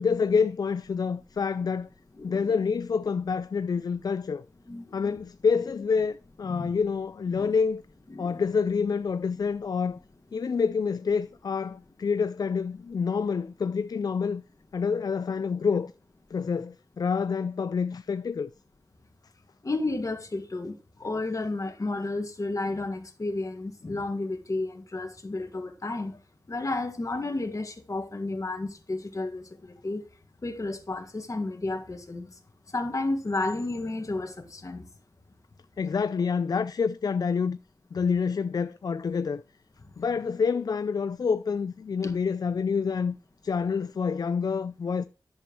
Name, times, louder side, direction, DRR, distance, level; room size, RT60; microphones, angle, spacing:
voice 1, 0.0-1.9 2.2-4.4 4.9-7.8 8.2-10.0 10.3-14.4 14.7-15.9 16.3-18.5 35.8-37.6 37.9-39.4 40.0-43.2 43.4-45.0, left 5 dB, 65° left, 0.3 m, -27 dB
voice 2, 2.2-2.6 4.7-5.2 6.5-6.7 7.3-7.5 8.1-8.4 10.4-10.5 19.6-26.2 26.5-30.1 30.4-32.3 32.7-34.9 39.8-40.0, left 2 dB, 50° left, 1.8 m, -32 dB
10.5 x 7.0 x 3.0 m
wide cardioid pair, 55°, 7 cm